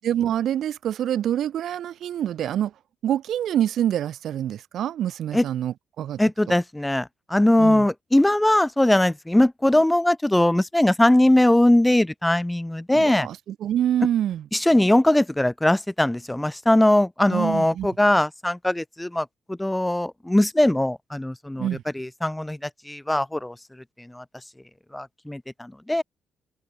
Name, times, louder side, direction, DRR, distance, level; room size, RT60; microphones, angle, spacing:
voice 1, 0.0-2.7 3.0-6.2 6.5-6.6 7.6-7.8 12.9-14.4 17.3-17.9 21.6-21.8, right 10 dB, 65° right, 7.5 m, -26 dB
voice 2, 6.2-13.3 14.5-21.7 21.9-23.6 24.0-24.2 24.9-26.0, left 1 dB, 5° left, 5.6 m, -20 dB
cardioid pair, 105°, 0 cm